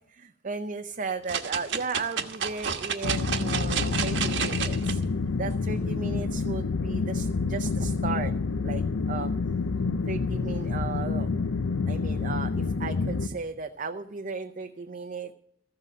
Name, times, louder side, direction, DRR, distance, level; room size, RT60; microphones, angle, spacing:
voice 1, 0.0-5.0 5.4-8.3 8.6-8.8 9.1-9.3 10.1-11.3 11.9-15.3, right 4 dB, 40° right, 6 dB, 0.6 m, -35 dB
sound 1, 1.3-4.9 5.5-5.6, right 6 dB, 65° right, 1.2 m, -30 dB
sound 2, 3.0-13.3, left 4 dB, 85° left, 0.6 m, -28 dB
14.5 x 7.6 x 7.5 m, 0.70 s
head